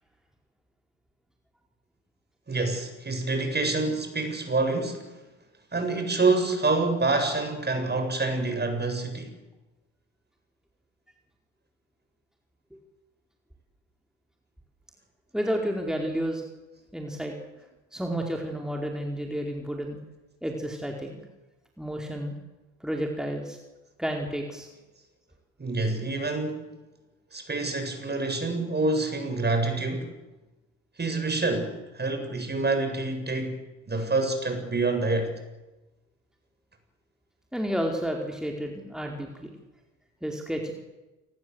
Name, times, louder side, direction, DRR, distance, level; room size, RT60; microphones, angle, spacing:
voice 1, 2.5-5.1 5.7-9.4 25.6-26.6 27.3-30.1 31.0-35.3, right 3 dB, 25° right, 7.7 m, -27 dB
voice 2, 15.3-16.4 16.9-17.3 17.9-20.0 20.4-21.2 21.8-22.4 22.8-23.6 24.0-24.7 37.5-39.5 40.2-40.7, equal, ahead, 4.6 m, -31 dB
28.0 x 20.5 x 8.1 m
hypercardioid pair, 60°, 38 cm